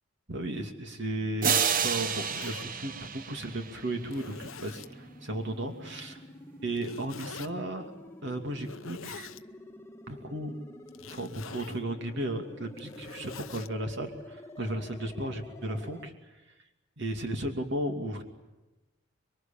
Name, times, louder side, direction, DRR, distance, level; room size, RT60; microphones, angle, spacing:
voice 1, 0.3-6.2 6.6-7.9 8.2-9.3 10.1-10.6 11.1-16.1 17.0-18.2, right 1 dB, 60° right, 5 dB, 2.7 m, -35 dB
sound 1, 1.2-16.1, left 1 dB, 15° left, 1.5 m, -49 dB
sound 2, 1.4-4.1, right 7 dB, 45° right, 1.0 m, -30 dB
Zipper (clothing), 1.9-2.7 3.4-3.5 4.1-4.9 6.8-7.5 8.5-9.4 10.9-11.8 12.6-13.7, left 6 dB, 85° left, 0.8 m, -45 dB
26.0 x 24.0 x 8.9 m, 1.1 s
head